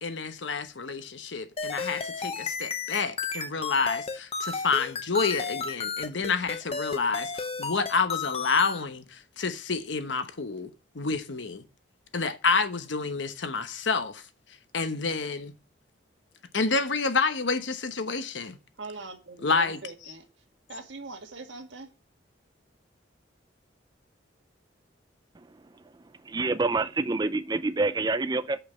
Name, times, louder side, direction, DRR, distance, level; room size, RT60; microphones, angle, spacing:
voice 1, 0.0-11.6 12.1-14.2 14.7-15.5 16.5-18.6 19.4-19.8, left 4 dB, 80° left, 1.0 m, -29 dB
sound 1, 1.6-8.8, left 5 dB, 35° left, 0.9 m, -33 dB
voice 2, 18.8-20.2 20.7-21.9, right 3 dB, 85° right, 1.9 m, -41 dB
voice 3, 26.2-28.6, right 3 dB, 20° right, 0.5 m, -27 dB
6.5 x 5.7 x 7.1 m
head